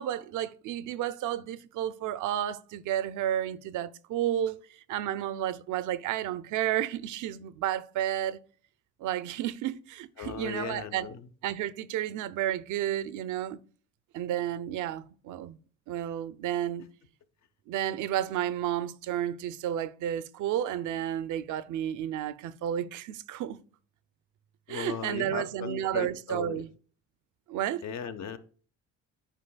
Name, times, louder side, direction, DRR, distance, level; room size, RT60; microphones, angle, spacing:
voice 1, 0.0-4.6 4.9-8.4 9.0-11.1 11.4-13.6 14.1-15.6 15.9-16.9 17.7-23.6 24.7-26.7 27.5-27.8, right 11 dB, 80° right, 0.5 m, -32 dB
voice 2, 10.2-11.3 24.7-26.6 27.8-28.4, left 7 dB, 65° left, 0.8 m, -37 dB
8.8 x 4.8 x 2.2 m
cardioid pair, 90°, 30 cm